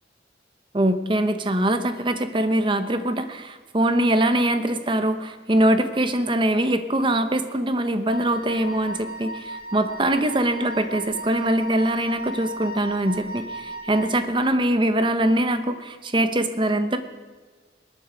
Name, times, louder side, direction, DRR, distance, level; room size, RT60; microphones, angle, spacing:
voice 1, 0.7-17.0, right 1 dB, 25° right, 10 dB, 0.9 m, -23 dB
Wind instrument woodwind instrument, 8.1-14.2, equal, 50° left, 1.4 m, -36 dB
20.5 x 9.3 x 5.1 m, 1.4 s
head